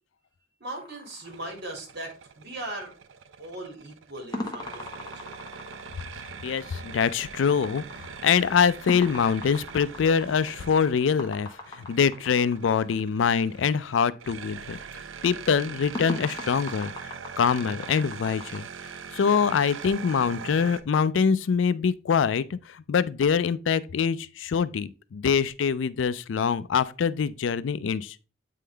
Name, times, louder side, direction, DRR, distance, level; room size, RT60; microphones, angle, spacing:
voice 1, 0.6-2.9 3.4-5.4, right 1 dB, 60° right, 2.3 m, -39 dB
sound 1, 0.7-2.1 4.3-12.9 15.9-18.6, left 2 dB, 20° left, 1.1 m, -40 dB
sound 2, 1.3-20.8, right 6 dB, 90° right, 0.5 m, -42 dB
voice 2, 6.4-11.5 11.8-14.8 15.2-16.9 17.4-18.6 19.1-28.2, left 6 dB, 70° left, 0.4 m, -24 dB
8.4 x 3.7 x 3.3 m
head